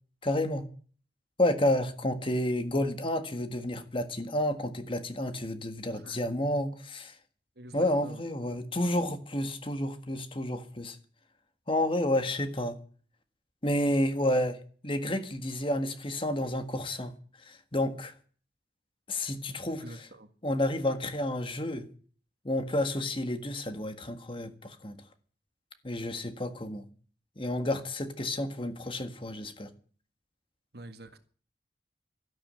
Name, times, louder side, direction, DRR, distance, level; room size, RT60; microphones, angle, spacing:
voice 1, 0.2-0.7 1.4-7.1 7.7-11.0 11.7-12.8 13.6-14.6 14.8-17.1 17.5-18.1 19.1-20.1 20.4-21.9 22.4-25.0 25.8-26.9 27.4-29.7, left 1 dB, 30° left, 1.7 m, -30 dB
voice 2, 7.6-8.2 19.8-20.3 30.7-31.2, right 1 dB, 60° right, 1.8 m, -46 dB
13.5 x 11.5 x 7.7 m
head